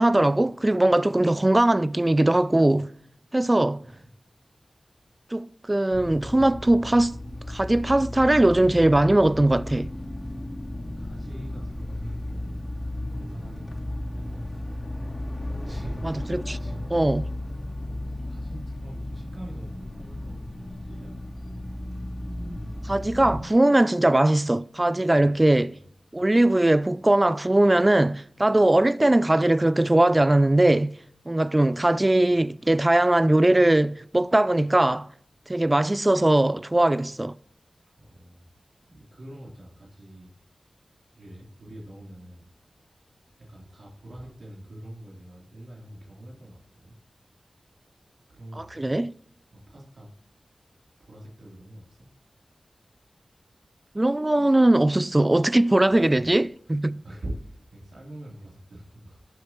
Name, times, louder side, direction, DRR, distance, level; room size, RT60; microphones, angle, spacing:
voice 1, 0.0-2.9 3.3-3.8 5.3-7.2 7.5-9.9 16.3-16.6 16.9-17.2 22.8-25.7 26.1-31.0 31.3-35.1 35.5-37.4 48.6-49.1 54.0-57.0, right 1 dB, 25° right, 0.3 m, -20 dB
sound 1, 5.9-23.4, left 1 dB, 30° left, 2.7 m, -34 dB
voice 2, 10.7-12.5 13.1-13.8 14.1-14.7 15.5-16.9 17.1-21.3 25.1-25.9 38.0-38.5 38.9-40.3 41.2-42.5 43.5-46.9 48.3-48.9 49.5-50.1 51.0-52.1 55.8-59.2, right 1 dB, 75° right, 3.4 m, -44 dB
18.5 x 8.1 x 3.1 m
wide cardioid pair, 55°, 0 cm